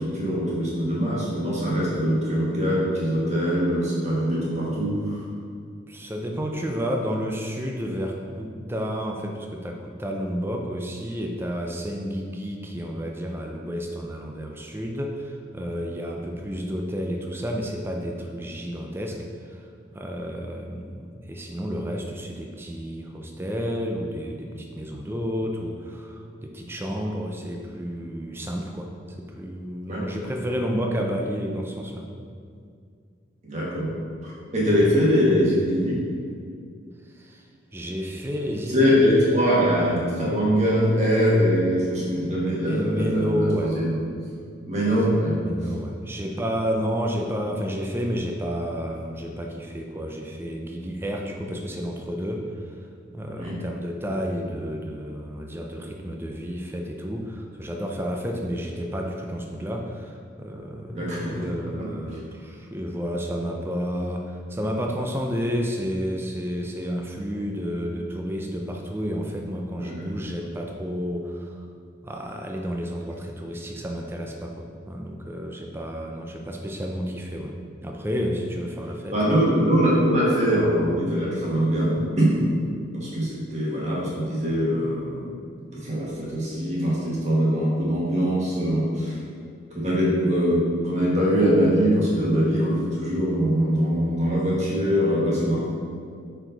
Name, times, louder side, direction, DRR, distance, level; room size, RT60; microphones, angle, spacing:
voice 1, 0.0-5.2 29.9-30.0 33.4-33.9 34.2-35.9 38.7-44.0 44.7-45.3 53.4-53.6 60.9-61.4 69.8-70.0 79.1-82.4 82.9-85.3 85.7-89.2 89.7-95.7, equal, 35° right, -6 dB, 1.5 m, -22 dB
voice 2, 5.9-32.1 37.1-37.5 37.7-39.7 42.7-43.8 44.9-45.0 45.3-52.8 53.1-71.6 72.0-77.6 77.8-79.4 85.4-85.5, equal, 10° right, 1 dB, 0.4 m, -31 dB
6.1 x 4.6 x 3.9 m, 2.2 s
head